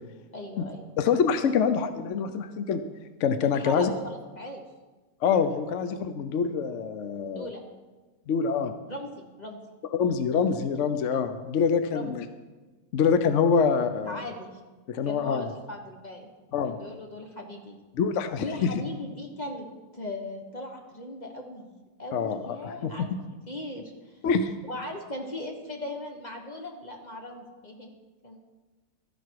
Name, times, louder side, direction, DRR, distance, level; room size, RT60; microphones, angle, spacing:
voice 1, 0.3-0.9 3.5-4.6 7.3-7.6 8.9-9.6 11.9-12.1 14.0-14.5 15.0-16.3 16.6-17.8 18.4-19.7 19.9-21.7 22.0-23.2 23.5-24.2 24.6-27.9 28.2-28.4, left 1 dB, 25° left, 2 dB, 1.2 m, -38 dB
voice 2, 1.0-2.8 3.2-3.9 5.2-7.5 8.3-8.7 9.9-12.2 12.9-14.2 14.9-15.5 16.5-16.7 17.9-18.7 22.1-23.1 24.2-24.5, left 6 dB, 65° left, 9 dB, 0.7 m, -25 dB
13.0 x 11.0 x 4.7 m, 1.2 s
omnidirectional pair, 2.0 m